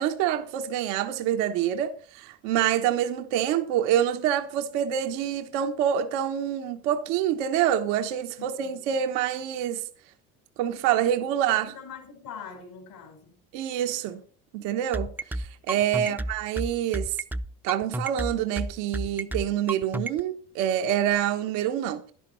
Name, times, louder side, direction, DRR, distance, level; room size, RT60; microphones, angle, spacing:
voice 1, 0.0-9.8 10.6-11.7 13.5-14.2 14.5-17.1 17.6-22.0, right 10 dB, 85° right, 1.2 m, -26 dB
voice 2, 8.4-8.9 11.0-13.4 15.9-16.3, left 6 dB, 65° left, 4.4 m, -44 dB
sound 1, 14.9-20.2, right 1 dB, 5° right, 0.6 m, -30 dB
11.0 x 11.0 x 4.4 m
supercardioid pair, 80°, 36 cm